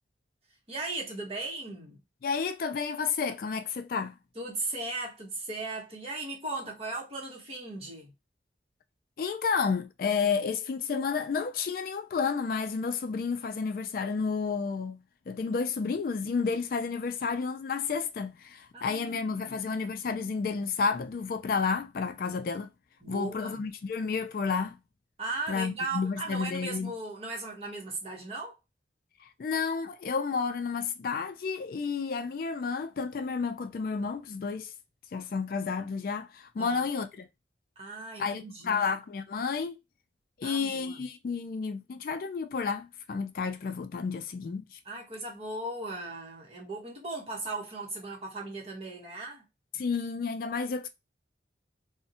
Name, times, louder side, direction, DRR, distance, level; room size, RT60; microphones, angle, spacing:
voice 1, 0.7-2.0 4.4-8.1 18.7-19.7 23.0-23.6 25.2-28.6 36.6-36.8 37.8-38.8 40.4-41.0 44.9-49.4, right 2 dB, 35° right, 0.9 m, -37 dB
voice 2, 2.2-4.2 9.2-22.7 23.1-24.8 25.5-26.9 29.2-34.7 35.1-37.3 38.2-39.8 40.4-44.8 49.7-50.9, left 5 dB, 55° left, 0.3 m, -31 dB
2.6 x 2.1 x 2.7 m
head